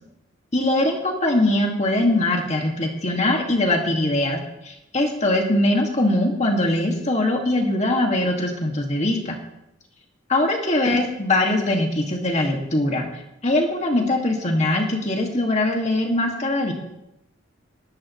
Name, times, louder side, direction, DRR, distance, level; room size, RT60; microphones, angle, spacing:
voice 1, 0.5-9.4 10.3-13.1 13.4-16.7, left 1 dB, 35° left, 1 dB, 2.1 m, -21 dB
19.0 x 13.0 x 3.2 m, 0.89 s
head